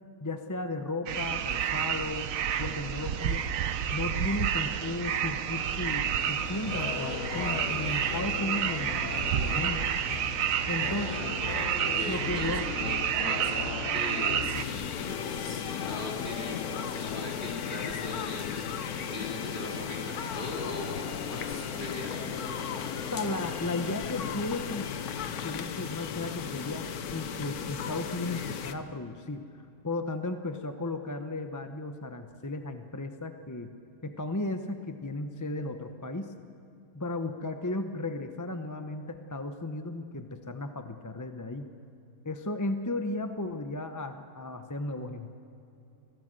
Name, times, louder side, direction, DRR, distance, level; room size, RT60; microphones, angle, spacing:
voice 1, 0.2-3.4 3.9-9.9 10.7-11.3 12.1-12.7 23.1-24.9 25.4-29.5 29.8-33.7 34.0-36.3 36.9-41.7 42.2-45.3, left 2 dB, 15° left, 7 dB, 0.8 m, -35 dB
sound 1, 1.1-14.6, right 9 dB, 65° right, 1.1 m, -30 dB
sound 2, 6.2-25.7, left 8 dB, 60° left, 1.1 m, -39 dB
voice 2, 10.9-11.5 11.9-15.0 15.2-22.5, left 2 dB, 30° left, -2 dB, 3.9 m, -40 dB
sound 3, 14.5-28.7, left 7 dB, 75° left, 1.5 m, -36 dB
25.5 x 17.5 x 7.7 m, 2.7 s
omnidirectional pair, 1.6 m